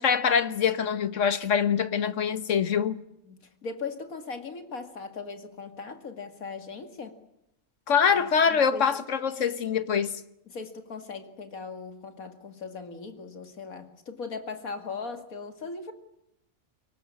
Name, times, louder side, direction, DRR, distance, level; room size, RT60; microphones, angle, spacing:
voice 1, 0.0-3.0 7.9-10.1, left 7 dB, 65° left, 1.5 m, -24 dB
voice 2, 3.2-7.2 8.1-8.9 10.5-15.9, left 4 dB, 85° left, 2.7 m, -39 dB
24.0 x 18.5 x 8.7 m
omnidirectional pair, 1.4 m